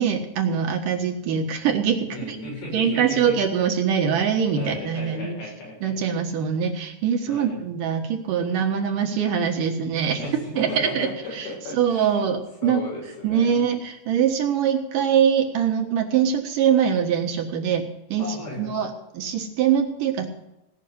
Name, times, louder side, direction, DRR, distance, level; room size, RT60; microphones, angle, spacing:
voice 1, 0.0-2.1 2.7-5.4 5.8-10.2 10.6-11.1 11.4-11.5 11.7-12.8 13.2-17.8 18.1-18.2 18.6-20.3, right 8 dB, 60° right, 4 dB, 2.7 m, -23 dB
voice 2, 2.1-3.4 4.5-6.0 7.3-7.6 10.2-12.3 12.6-13.6 18.2-18.8, left 2 dB, 90° left, -4 dB, 9.4 m, -35 dB
18.5 x 6.4 x 9.6 m, 0.90 s
omnidirectional pair, 4.9 m